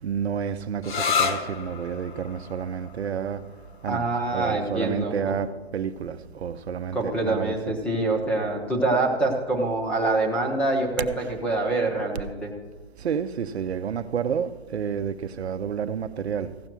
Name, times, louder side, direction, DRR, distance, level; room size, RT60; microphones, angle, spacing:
voice 1, 0.0-3.5 3.8-7.8 11.2-11.3 13.0-16.6, right 7 dB, 80° right, 0.8 m, -30 dB
sound 1, 0.8-8.2, left 6 dB, 50° left, 1.1 m, -33 dB
voice 2, 3.9-5.4 6.9-12.5, right 2 dB, 5° left, 0.7 m, -25 dB
15.5 x 5.6 x 6.1 m
hypercardioid pair, 155°, 32 cm